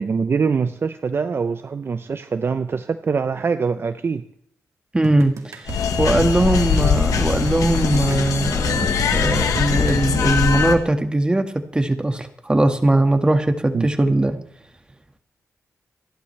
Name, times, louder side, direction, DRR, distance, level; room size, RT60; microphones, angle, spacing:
voice 1, 0.0-4.2 13.7-13.9, right 5 dB, 45° right, 10 dB, 0.7 m, -23 dB
voice 2, 4.9-5.6 6.0-14.4, right 2 dB, 15° right, 6 dB, 1.8 m, -20 dB
sound 1, 5.0-10.2, right 4 dB, 65° right, 2.1 m, -33 dB
sound 2, 5.7-10.7, left 7 dB, 90° left, 1.6 m, -21 dB
28.5 x 11.5 x 3.4 m, 0.66 s
cardioid pair, 95°, 6 cm